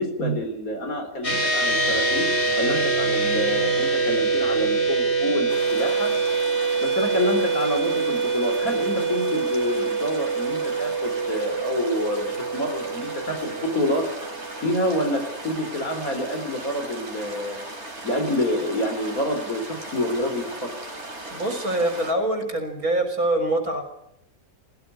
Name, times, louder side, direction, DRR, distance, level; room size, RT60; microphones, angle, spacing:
voice 1, 0.0-2.3 2.5-6.1 6.8-12.3 12.5-14.1 14.6-17.6 18.0-20.7, left 1 dB, 75° left, 6 dB, 4.5 m, -27 dB
sound 1, 1.2-14.8, right 4 dB, 45° left, 4.0 m, -25 dB
sound 2, 5.5-22.1, right 2 dB, 50° right, 4.2 m, -37 dB
voice 2, 21.3-23.8, right 1 dB, 80° right, 6 dB, 4.6 m, -24 dB
18.0 x 15.5 x 9.9 m, 0.75 s
omnidirectional pair, 1.5 m